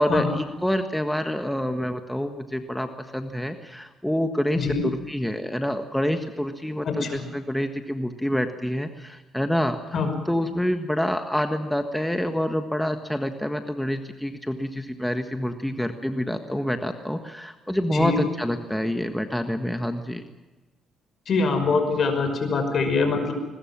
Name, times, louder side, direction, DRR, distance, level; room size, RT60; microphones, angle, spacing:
voice 1, 0.0-9.8 10.3-20.2, equal, 5° left, 7 dB, 1.6 m, -27 dB
voice 2, 6.8-7.2 9.9-10.1 17.9-18.2 21.3-23.3, left 4 dB, 55° left, 7 dB, 5.7 m, -24 dB
22.0 x 20.5 x 7.5 m, 1.2 s
cardioid pair, 90°, 0 cm